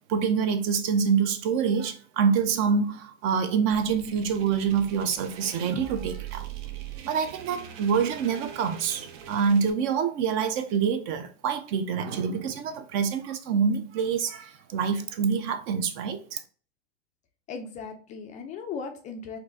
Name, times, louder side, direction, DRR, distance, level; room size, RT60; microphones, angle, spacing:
voice 1, 0.1-6.5 7.0-16.4, right 6 dB, 35° right, 0.5 m, -26 dB
sound 1, 3.7-9.7, right 10 dB, 65° right, 0.8 m, -42 dB
voice 2, 17.5-19.4, left 5 dB, 25° left, 0.4 m, -37 dB
4.4 x 2.5 x 2.6 m
hypercardioid pair, 125°, 33 cm